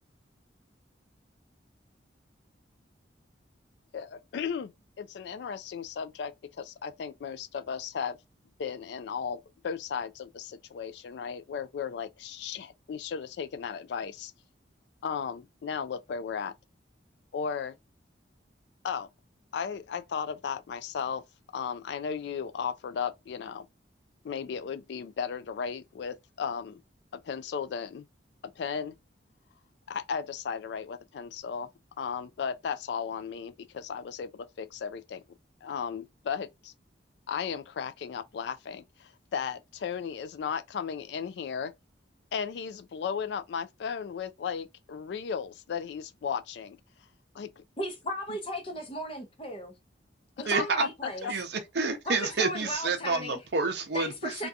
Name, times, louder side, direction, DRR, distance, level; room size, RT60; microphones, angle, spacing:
voice 1, 3.9-8.2 8.6-14.3 15.0-16.5 17.3-17.8 18.8-19.1 19.5-21.2 21.5-23.7 24.2-26.8 27.1-28.1 28.6-29.0 29.9-31.7 32.0-35.2 35.6-36.7 37.3-41.7 42.3-46.8 47.3-47.6 50.5-51.3, left 6 dB, 65° left, 0.3 m, -35 dB
voice 2, 47.8-49.8 50.4-51.3 52.1-53.4 53.9-54.5, equal, 30° left, 0.6 m, -36 dB
voice 3, 50.5-50.8 51.2-54.5, right 4 dB, 60° right, 0.6 m, -29 dB
2.6 x 2.3 x 2.3 m
head